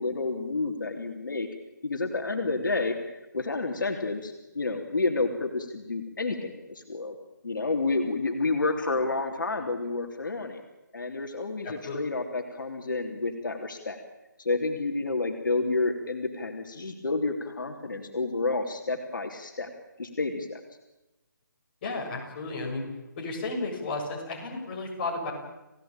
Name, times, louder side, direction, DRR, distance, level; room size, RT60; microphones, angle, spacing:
voice 1, 0.0-1.5 1.8-7.1 7.4-10.6 10.9-14.0 14.4-19.7 20.0-20.6, left 3 dB, 70° left, 3 dB, 3.3 m, -30 dB
voice 2, 11.6-12.0 21.8-22.9 23.2-25.3, left 3 dB, 30° left, -1 dB, 7.6 m, -33 dB
30.0 x 17.5 x 9.0 m, 1.0 s
figure-of-eight pair, 160°, 11 cm